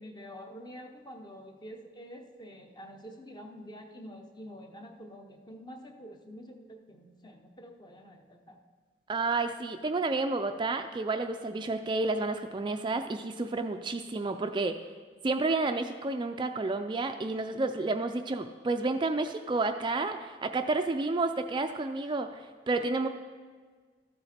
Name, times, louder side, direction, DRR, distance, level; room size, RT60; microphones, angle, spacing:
voice 1, 0.0-8.6 22.0-22.1 22.7-22.9, equal, 25° left, 4 dB, 0.9 m, -47 dB
voice 2, 9.1-14.7 15.2-23.1, right 3 dB, 25° right, 6 dB, 0.4 m, -30 dB
13.0 x 7.8 x 4.3 m, 1.5 s
head